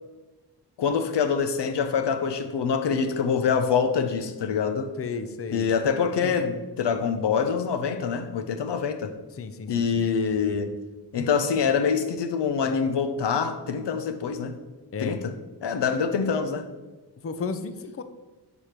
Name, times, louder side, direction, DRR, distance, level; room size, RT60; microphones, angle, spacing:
voice 1, 0.8-4.9 5.5-9.1 9.7-10.7 11.1-14.6 15.0-15.3 15.6-16.7, left 6 dB, 80° left, 0.7 m, -25 dB
voice 2, 5.0-5.7 6.2-6.4 9.4-10.1 14.9-15.2 17.2-18.0, left 4 dB, 35° left, 0.5 m, -33 dB
5.0 x 4.8 x 5.8 m
cardioid pair, 70°, 41 cm